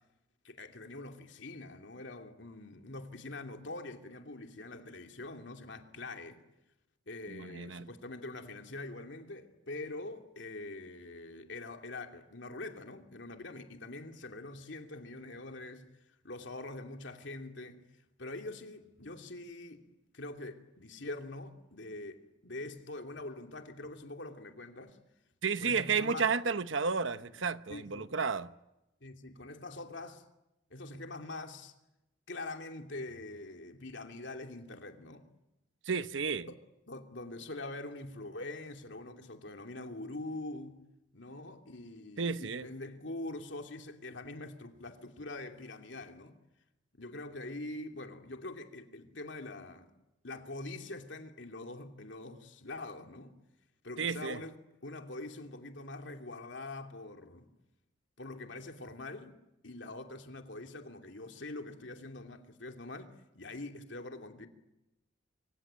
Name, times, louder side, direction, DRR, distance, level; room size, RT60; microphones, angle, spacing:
voice 1, 0.4-6.4 7.1-15.9 16.2-17.8 18.2-19.8 20.1-25.0 25.6-26.3 27.2-27.3 27.7-28.1 29.0-30.2 30.7-31.7 32.3-35.2 36.5-36.6 36.9-40.8 41.1-46.3 46.9-49.9 50.2-53.4 53.8-54.6 54.8-57.5 58.2-59.4 59.6-64.5, left 2 dB, 65° left, 2.8 m, -44 dB
voice 2, 7.3-7.9 25.4-28.5 35.9-36.5 42.2-42.6 54.0-54.4, right 5 dB, 75° right, 1.0 m, -32 dB
26.0 x 26.0 x 8.8 m
head